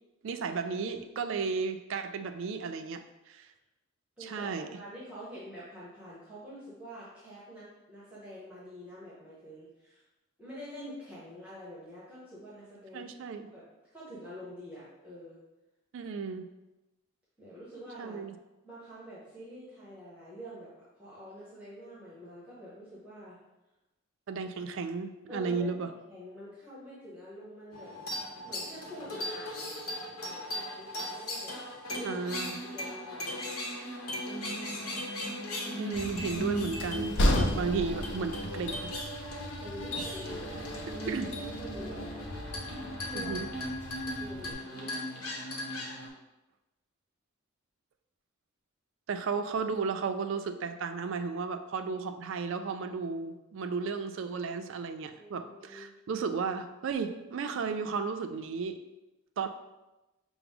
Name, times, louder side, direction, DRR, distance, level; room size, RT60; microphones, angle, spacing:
voice 1, 0.2-3.5 4.2-4.7 12.9-13.5 15.9-16.5 18.0-18.4 24.3-25.9 32.0-32.6 35.8-38.9 41.1-41.3 43.1-43.5 49.1-58.8 59.4-59.5, right 5 dB, 60° right, 8 dB, 0.3 m, -34 dB
voice 2, 4.2-10.0 10.4-13.1 13.4-13.6 13.9-15.4 17.4-18.2 18.6-23.4 25.3-27.9 28.4-29.8 30.2-31.6 31.9-33.6 37.1-38.0 38.4-38.7 39.6-41.3 41.6-42.3 43.1-43.3 44.0-45.3 55.1-55.9, equal, 5° right, -9 dB, 0.8 m, -47 dB
sound 1, 27.7-46.1, equal, 80° left, 0.9 m, -38 dB
Train, 35.9-44.5, left 1 dB, 55° left, 0.5 m, -34 dB
5.7 x 2.0 x 3.5 m, 1.0 s
head